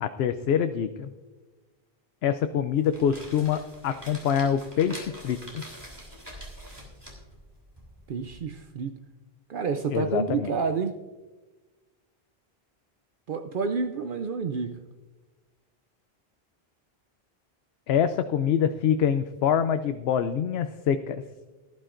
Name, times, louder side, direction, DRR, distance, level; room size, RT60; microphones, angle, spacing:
voice 1, 0.0-1.1 2.2-5.6 9.9-10.5 17.9-21.2, left 8 dB, 80° left, 9 dB, 0.8 m, -25 dB
sound 1, 2.7-8.3, equal, 25° right, 3.0 m, -45 dB
voice 2, 8.1-9.1 9.5-11.0 13.3-14.9, right 5 dB, 60° right, 7 dB, 0.7 m, -29 dB
18.5 x 12.0 x 2.5 m, 1.2 s
omnidirectional pair, 1.0 m